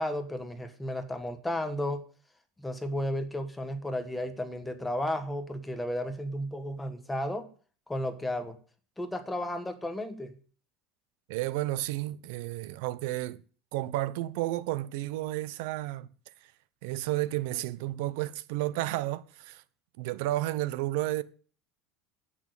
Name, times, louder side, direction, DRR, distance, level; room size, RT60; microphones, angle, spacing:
voice 1, 0.0-2.0 2.6-7.5 7.9-8.6 9.0-10.3, left 1 dB, 5° left, 1.4 m, -33 dB
voice 2, 11.3-13.4 13.7-16.1 16.8-19.6 20.0-21.2, right 16 dB, 70° right, 0.9 m, -32 dB
10.5 x 8.9 x 8.2 m
cardioid pair, 160°, 0 cm